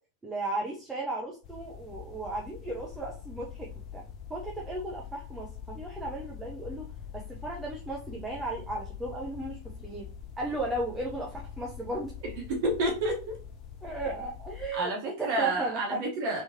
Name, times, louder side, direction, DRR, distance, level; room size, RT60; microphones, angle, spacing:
voice 1, 0.2-4.0 4.3-6.9 7.1-10.0 10.4-12.1 13.8-14.9 15.2-16.0, right 2 dB, 10° right, -2 dB, 0.7 m, -35 dB
sound 1, 1.4-14.7, left 7 dB, 35° left, 0.6 m, -44 dB
voice 2, 12.5-13.4 14.7-16.4, right 1 dB, 50° right, -1 dB, 1.0 m, -29 dB
3.4 x 3.0 x 2.7 m, 0.37 s
figure-of-eight pair, 90°, 0 cm